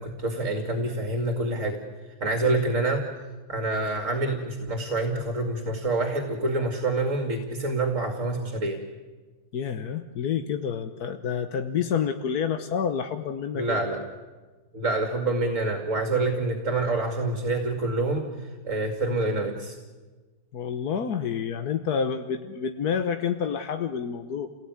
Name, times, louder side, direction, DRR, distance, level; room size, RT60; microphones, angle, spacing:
voice 1, 0.0-1.8 2.2-3.0 3.5-8.8 13.5-14.0 14.7-19.8, right 2 dB, 55° right, 4 dB, 2.7 m, -27 dB
voice 2, 9.5-13.8 20.5-24.5, left 7 dB, 90° left, 7 dB, 1.6 m, -28 dB
29.0 x 18.5 x 9.6 m, 1.3 s
omnidirectional pair, 1.6 m